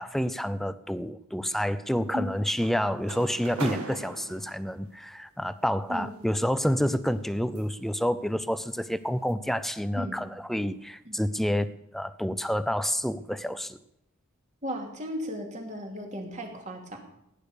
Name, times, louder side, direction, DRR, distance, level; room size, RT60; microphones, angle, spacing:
voice 1, 0.0-13.8, equal, ahead, 14 dB, 0.5 m, -29 dB
sound 1, 1.9-4.9 6.0-7.9 8.4-8.6 9.1-9.3, right 3 dB, 85° right, 1.8 m, -40 dB
voice 2, 14.6-17.0, equal, 30° right, 2 dB, 2.7 m, -35 dB
17.0 x 10.5 x 6.7 m, 0.81 s
head